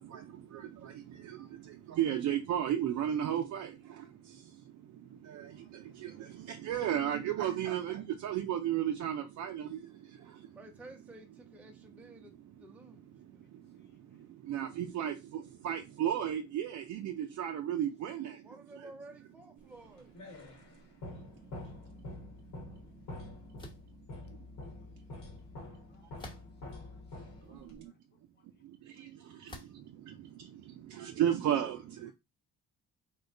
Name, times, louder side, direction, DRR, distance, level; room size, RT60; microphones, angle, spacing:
voice 1, 0.0-10.6 11.9-12.3 12.6-18.9 27.4-27.9 28.6-32.1, right 10 dB, 70° right, 0.5 m, -35 dB
voice 2, 10.3-13.5 18.4-20.2, right 1 dB, 5° right, 0.4 m, -53 dB
sound 1, 19.7-27.9, left 1 dB, 90° left, 1.3 m, -47 dB
voice 3, 21.3-22.4 22.9-23.2 24.7-24.9 25.6-26.4 26.7-27.0 27.5-28.5 29.0-29.1 29.5-29.6, left 4 dB, 35° left, 0.9 m, -71 dB
sound 2, 23.6-23.9 26.2-26.7 27.4-27.5 29.5-29.9, left 1 dB, 15° left, 1.0 m, -48 dB
3.0 x 2.2 x 3.7 m
cardioid pair, 90°, 30 cm